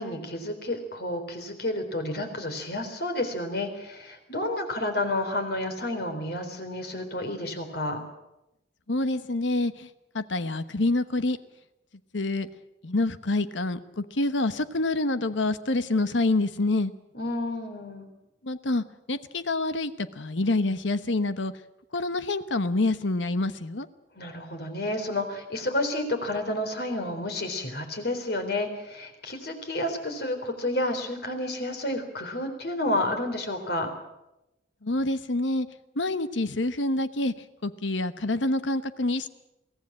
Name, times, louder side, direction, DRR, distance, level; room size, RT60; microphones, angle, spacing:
voice 1, 0.0-8.0 17.1-18.1 24.2-33.9, left 1 dB, 60° left, 6 dB, 3.9 m, -30 dB
voice 2, 8.9-9.9 10.1-11.4 12.1-12.5 12.8-16.9 18.4-21.5 21.9-23.9 34.8-35.7 36.0-37.3 37.6-39.3, left 2 dB, 80° left, 12 dB, 1.1 m, -27 dB
23.0 x 16.5 x 8.7 m, 0.91 s
head